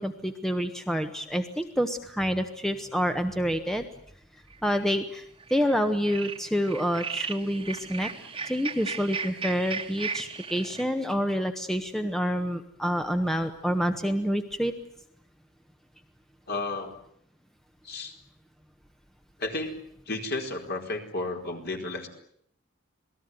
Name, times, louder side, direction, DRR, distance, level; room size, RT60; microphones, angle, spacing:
voice 1, 0.0-3.8 4.6-5.2 5.5-8.1 8.4-14.7, equal, ahead, 7 dB, 1.3 m, -28 dB
sound 1, 4.5-4.9 5.4-5.7 6.0-10.8, right 5 dB, 25° right, 1.7 m, -36 dB
voice 2, 16.5-17.0 17.8-18.1 19.4-19.7 20.1-22.1, left 2 dB, 50° left, 3 dB, 4.6 m, -32 dB
27.5 x 19.0 x 9.5 m, 0.68 s
head